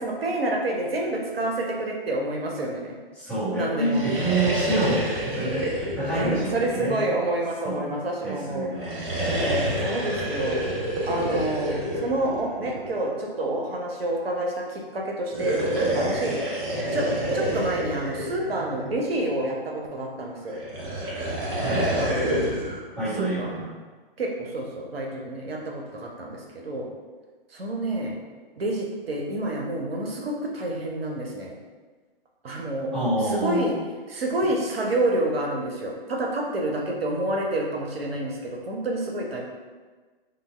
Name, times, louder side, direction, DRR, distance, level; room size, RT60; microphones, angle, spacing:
voice 1, 0.0-2.9 3.6-4.0 6.1-8.7 9.2-10.7 11.0-16.4 16.9-20.6 21.9-22.4 23.2-23.6 24.2-26.9 27.5-28.2 28.6-31.6 32.4-32.9 33.2-33.8 34.1-39.4, right 1 dB, 80° right, 0 dB, 0.6 m, -28 dB
voice 2, 3.2-7.0 7.6-7.8 8.2-9.0 21.5-21.9 23.0-23.7 32.9-33.7, right 2 dB, 5° left, -12 dB, 1.3 m, -27 dB
sound 1, 3.8-7.4 8.7-13.0 15.2-19.2 20.5-22.8, equal, 20° right, 0.5 m, -28 dB
3.3 x 2.0 x 3.3 m, 1.4 s
figure-of-eight pair, 125°, 29 cm